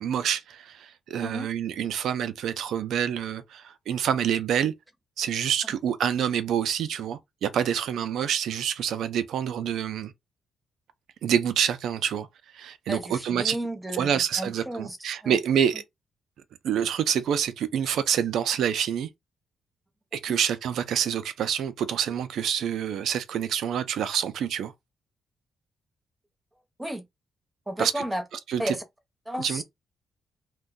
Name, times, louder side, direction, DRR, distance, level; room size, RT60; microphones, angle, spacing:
voice 1, 0.0-4.7 5.2-10.1 11.2-12.3 12.5-13.6 13.9-15.8 16.6-19.1 20.1-24.7 27.8-28.0 28.5-28.7 29.4-29.6, right 8 dB, 85° right, 0.4 m, -27 dB
voice 2, 12.9-15.0 15.2-15.4 26.8-27.0 27.7-28.2 28.6-28.8 29.3-29.6, right 1 dB, 10° right, 0.8 m, -32 dB
2.6 x 2.2 x 3.6 m
cardioid pair, 105°, 0 cm